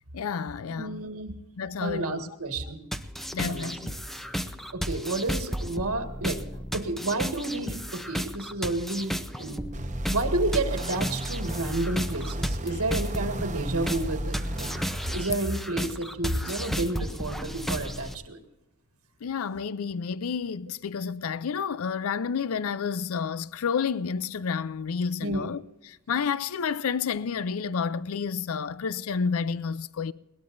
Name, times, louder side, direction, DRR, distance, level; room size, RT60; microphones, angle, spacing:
voice 1, 0.1-1.0 1.6-2.2 3.3-3.9 16.7-16.8 19.2-30.1, left 6 dB, 70° left, 0.5 m, -30 dB
voice 2, 0.7-1.3 1.8-2.8 3.5-3.7 4.7-6.4 6.7-9.7 10.1-18.4 25.2-25.5, right 2 dB, 80° right, 1.7 m, -31 dB
sound 1, 2.9-18.1, equal, ahead, 0.7 m, -34 dB
sound 2, 9.7-15.2, right 1 dB, 35° right, 1.0 m, -33 dB
21.0 x 19.0 x 2.6 m
head